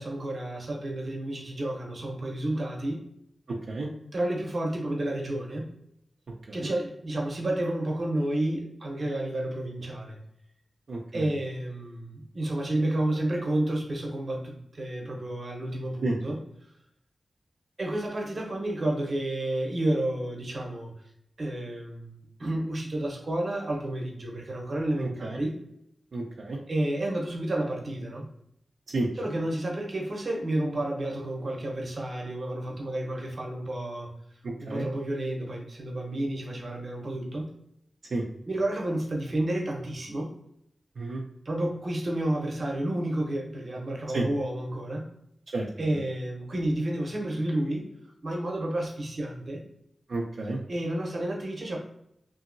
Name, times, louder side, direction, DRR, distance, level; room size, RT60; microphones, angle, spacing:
voice 1, 0.0-3.0 4.1-5.7 6.5-10.2 11.1-16.4 17.8-20.9 21.4-25.6 26.7-28.3 29.2-34.1 34.6-37.5 38.5-40.3 41.4-45.1 45.8-47.9 48.2-49.6 50.7-51.8, right 1 dB, 55° right, 0 dB, 0.8 m, -30 dB
voice 2, 3.5-3.9 6.5-6.7 10.9-11.2 16.0-16.2 25.0-25.4 26.1-26.6 28.9-29.1 34.4-34.8 38.1-38.2 41.0-41.2 44.1-44.3 45.5-45.7 50.1-50.6, right 2 dB, 75° right, -2 dB, 0.4 m, -31 dB
2.8 x 2.6 x 2.6 m, 0.75 s
wide cardioid pair, 80°, 0 cm